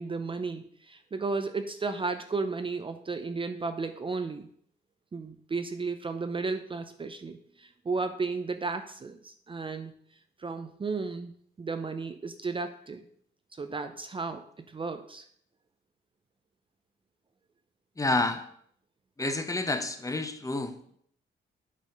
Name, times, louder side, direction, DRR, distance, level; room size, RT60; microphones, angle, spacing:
voice 1, 0.0-4.5 5.1-9.9 10.4-11.3 11.6-13.0 13.5-15.2, right 4 dB, 25° right, 8 dB, 0.6 m, -34 dB
voice 2, 18.0-18.4 19.2-20.7, left 2 dB, 15° left, 8 dB, 0.9 m, -29 dB
8.3 x 4.2 x 5.2 m, 0.63 s
cardioid pair, 90°, 20 cm